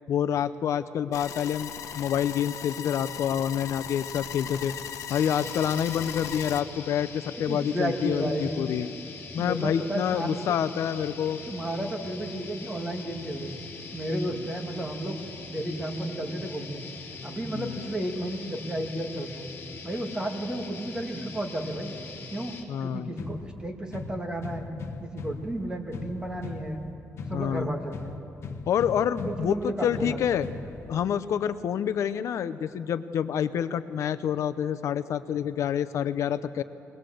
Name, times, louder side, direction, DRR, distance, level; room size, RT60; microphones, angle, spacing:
voice 1, 0.1-4.7 5.1-8.9 9.3-11.4 17.5-17.9 22.7-23.1 27.3-27.7 28.7-30.5 30.9-36.6, left 9 dB, 70° left, 13 dB, 0.6 m, -27 dB
sound 1, 1.1-6.6, left 9 dB, 85° left, 1.0 m, -38 dB
sound 2, 5.1-22.6, left 3 dB, 35° left, 3.0 m, -42 dB
voice 2, 7.5-8.6 9.4-10.6 11.5-13.6 13.9-15.2 15.5-16.8 17.2-19.5 19.8-21.9 22.3-22.5 22.8-26.9 27.2-28.2 29.2-30.2, right 1 dB, 15° right, 3 dB, 2.1 m, -32 dB
sound 3, 23.2-31.2, left 4 dB, 55° left, 1.3 m, -40 dB
23.0 x 19.5 x 7.8 m, 2.8 s
cardioid pair, 140°, 5 cm